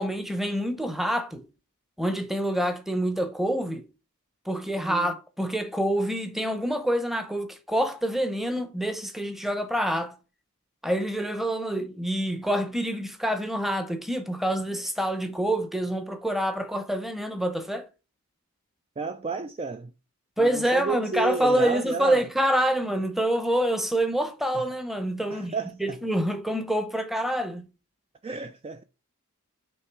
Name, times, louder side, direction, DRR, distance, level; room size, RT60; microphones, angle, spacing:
voice 1, 0.0-1.5 2.0-3.8 4.5-10.2 10.8-17.9 20.4-25.5 25.8-27.7, right 1 dB, ahead, 0.8 m, -26 dB
voice 2, 19.0-19.9 20.4-22.3 24.5-24.7 25.3-26.0 28.2-28.8, right 4 dB, 25° right, 0.3 m, -32 dB
6.2 x 3.3 x 4.6 m
head